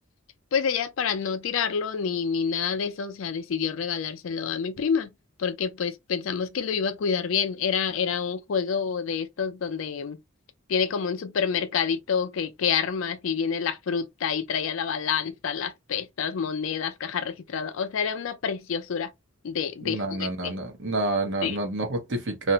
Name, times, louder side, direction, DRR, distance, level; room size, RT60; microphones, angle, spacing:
voice 1, 0.5-5.1 5.4-10.2 10.7-19.1 19.4-20.5 21.4-21.6, left 6 dB, 65° left, 0.4 m, -28 dB
voice 2, 19.8-22.5, right 2 dB, 60° right, 0.8 m, -28 dB
2.5 x 2.0 x 2.7 m
head